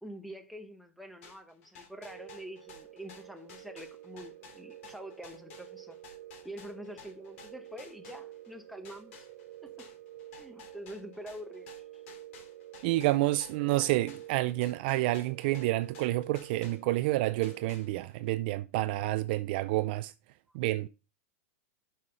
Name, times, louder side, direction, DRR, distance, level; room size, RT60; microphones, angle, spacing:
voice 1, 0.0-6.0 6.4-9.3 9.6-9.9 10.3-11.7 20.8-20.9, right 1 dB, ahead, 0.8 m, -46 dB
sound 1, 1.2-8.5 8.8-17.1 17.4-18.2, left 6 dB, 55° left, 3.4 m, -54 dB
sound 2, 1.9-17.7, right 14 dB, 75° right, 1.3 m, -50 dB
voice 2, 12.8-20.1 20.5-20.9, right 17 dB, 40° right, 0.4 m, -29 dB
6.5 x 5.7 x 5.1 m
supercardioid pair, 160°, 8 cm